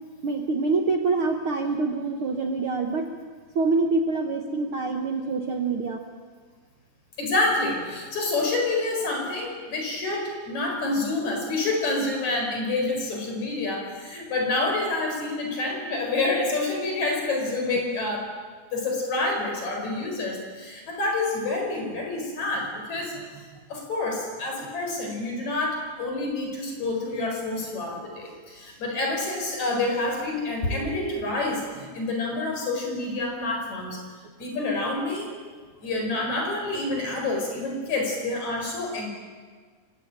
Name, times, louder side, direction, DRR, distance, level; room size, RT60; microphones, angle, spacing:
voice 1, 0.2-3.0 3.5-6.0 30.7-31.3, right 3 dB, 55° right, 4 dB, 1.6 m, -26 dB
voice 2, 7.2-18.3 18.7-23.1 23.7-34.0 34.4-35.3 35.8-39.1, left 2 dB, 55° left, 1 dB, 6.0 m, -28 dB
27.5 x 16.5 x 9.0 m, 1.6 s
omnidirectional pair, 3.9 m